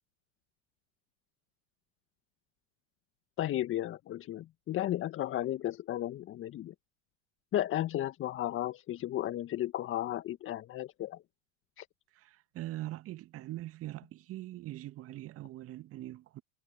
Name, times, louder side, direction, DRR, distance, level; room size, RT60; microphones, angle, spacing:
voice 1, 3.4-6.7 7.5-11.2 11.8-11.9, left 13 dB, 35° left, 1.9 m, -34 dB
voice 2, 12.1-16.4, right 15 dB, 35° right, 2.2 m, -42 dB
hypercardioid pair, 90°, 38 cm